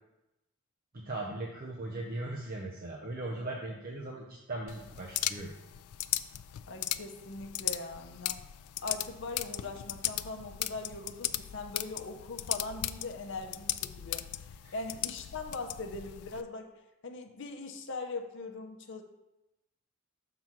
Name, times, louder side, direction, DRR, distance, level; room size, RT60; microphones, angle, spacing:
voice 1, 0.9-5.5 14.6-14.7, right 2 dB, 40° right, -2 dB, 0.7 m, -39 dB
sound 1, 4.7-16.4, left 14 dB, 85° left, 0.3 m, -37 dB
voice 2, 6.7-8.4 8.8-16.7 17.0-19.0, left 3 dB, 55° left, 5 dB, 0.7 m, -41 dB
6.0 x 3.8 x 5.9 m, 0.98 s
head